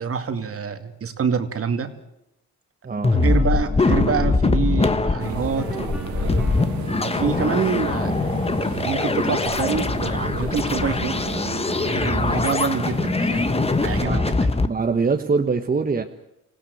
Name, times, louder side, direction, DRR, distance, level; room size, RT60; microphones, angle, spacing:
voice 1, 0.0-1.9 3.0-6.4 7.0-8.3 8.6-11.2 11.9-13.5 13.8-14.6, right 6 dB, 50° right, 8 dB, 2.4 m, -26 dB
sound 1, 3.0-14.7, left 3 dB, 20° left, 1.4 m, -22 dB
sound 2, 3.2-10.6, equal, 5° right, 2.4 m, -41 dB
sound 3, 5.2-14.1, right 7 dB, 70° right, 2.2 m, -33 dB
voice 2, 14.6-16.0, right 4 dB, 30° right, 5 dB, 1.4 m, -23 dB
26.5 x 16.5 x 8.0 m, 0.85 s
cardioid pair, 90°, 30 cm